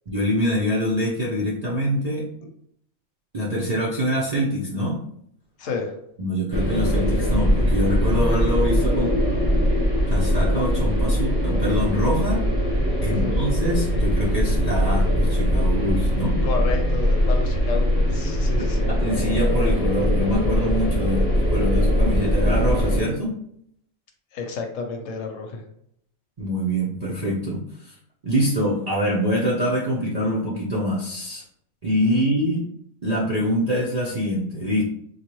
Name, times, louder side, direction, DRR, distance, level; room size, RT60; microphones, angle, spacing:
voice 1, 0.1-2.4 3.3-5.1 6.2-9.1 10.1-12.5 13.0-16.4 19.0-23.4 26.4-27.9 28.2-31.4 31.8-32.7 33.0-34.8, equal, 50° right, -6 dB, 0.5 m, -24 dB
voice 2, 5.6-5.9 13.1-13.4 16.4-18.9 24.3-25.6 32.1-32.3, left 4 dB, 70° left, 3 dB, 1.0 m, -30 dB
sound 1, 6.5-23.0, equal, 10° left, 1.0 m, -21 dB
3.9 x 2.4 x 3.0 m, 0.72 s
omnidirectional pair, 1.4 m